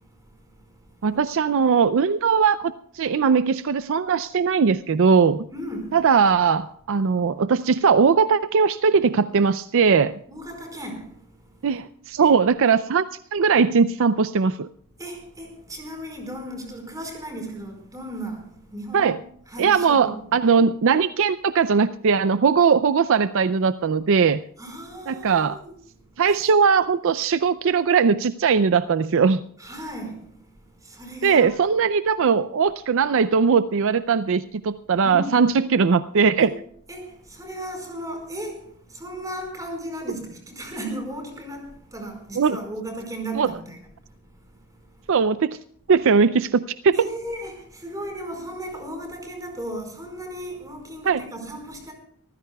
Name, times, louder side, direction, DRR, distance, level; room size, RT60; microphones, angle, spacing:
voice 1, 1.0-5.5 5.9-10.1 11.6-13.1 13.3-14.7 18.9-19.2 19.6-24.4 25.1-25.6 26.2-29.4 31.2-36.5 42.4-42.6 43.4-43.5 45.1-45.6 45.9-46.9 51.1-51.2, right 5 dB, 60° right, 0.5 m, -19 dB
voice 2, 5.5-6.0 10.3-11.1 12.2-12.4 15.0-18.4 18.7-19.1 19.5-20.3 24.6-25.7 26.3-26.4 29.6-30.2 30.8-31.5 35.0-35.4 36.4-36.5 36.9-43.9 46.9-51.9, right 1 dB, 15° right, 4.7 m, -35 dB
25.0 x 15.0 x 2.3 m
head